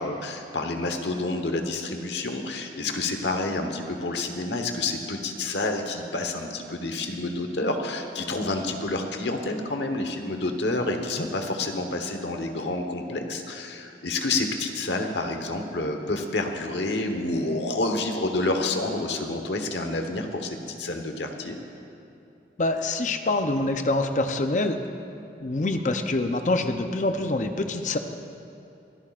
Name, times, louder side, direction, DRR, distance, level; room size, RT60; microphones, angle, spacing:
voice 1, 0.0-21.6, left 2 dB, 85° left, 5 dB, 1.1 m, -29 dB
voice 2, 22.6-24.8 25.4-28.0, left 2 dB, 45° left, 6 dB, 0.6 m, -25 dB
24.0 x 13.0 x 2.5 m, 2.7 s
head